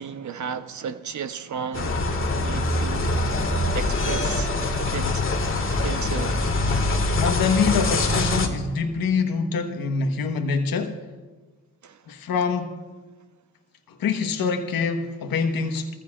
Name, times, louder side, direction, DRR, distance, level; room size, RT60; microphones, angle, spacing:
voice 1, 0.0-2.0 2.3-3.1 3.7-5.2 5.8-6.5 11.8-12.0, right 7 dB, 45° right, 1.1 m, -34 dB
sound 1, 1.7-8.5, left 2 dB, 30° left, 1.9 m, -24 dB
voice 2, 7.2-11.0 12.1-12.8 13.9-15.9, left 5 dB, 60° left, 1.4 m, -25 dB
20.5 x 15.0 x 2.5 m
supercardioid pair, 65°, 39 cm